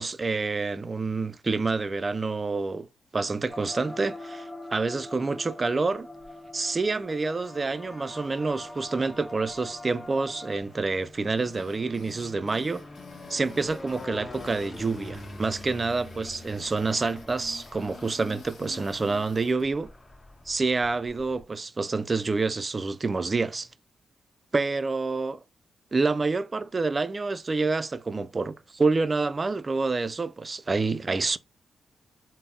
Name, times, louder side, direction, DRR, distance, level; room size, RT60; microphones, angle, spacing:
voice 1, 0.0-2.9 3.1-4.4 4.7-6.1 6.5-12.8 13.3-19.9 20.5-23.7 24.5-25.4 25.9-31.4, right 3 dB, 35° right, 0.3 m, -28 dB
sound 1, 3.5-10.6, left 1 dB, 5° left, 1.0 m, -43 dB
sound 2, 5.9-6.7 7.4-21.4, left 2 dB, 40° left, 1.2 m, -46 dB
sound 3, 11.4-19.7, left 5 dB, 75° left, 0.7 m, -49 dB
4.0 x 2.0 x 3.6 m
cardioid pair, 70°, 0 cm